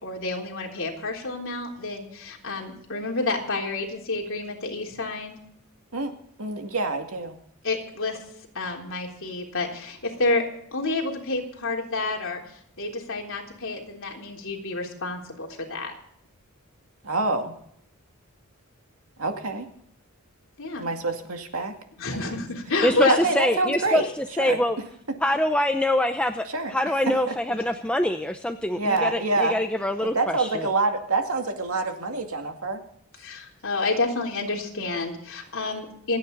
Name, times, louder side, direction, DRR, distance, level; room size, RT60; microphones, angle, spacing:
voice 1, 0.0-5.4 7.6-8.2 8.5-10.4 10.7-12.4 12.8-15.9 20.6-20.9 22.0-23.2 33.2-36.2, left 3 dB, 60° left, 0 dB, 3.7 m, -29 dB
voice 2, 5.9-7.4 17.0-17.5 19.2-19.7 20.8-21.7 22.1-22.3 23.1-24.1 24.4-24.6 25.1-25.2 26.5-26.8 27.1-27.3 28.8-29.6 30.0-32.8, right 3 dB, 70° right, 4 dB, 2.3 m, -27 dB
voice 3, 22.8-24.0 24.4-24.8 25.2-30.7, left 1 dB, 5° left, 5 dB, 0.7 m, -24 dB
27.5 x 9.5 x 4.0 m, 0.70 s
head